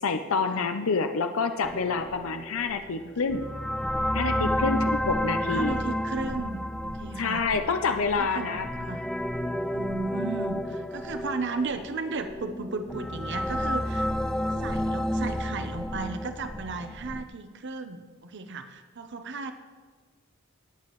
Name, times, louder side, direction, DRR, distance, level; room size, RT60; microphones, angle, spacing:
voice 1, 0.0-3.4 4.1-5.8 7.2-8.7, left 4 dB, 75° left, 7 dB, 0.6 m, -27 dB
sound 1, 1.6-17.2, equal, 5° left, 0.3 m, -31 dB
voice 2, 5.3-7.5 8.2-9.1 9.7-14.1 14.6-19.5, right 3 dB, 60° right, 8 dB, 0.8 m, -35 dB
19.5 x 8.7 x 3.1 m, 1.4 s
head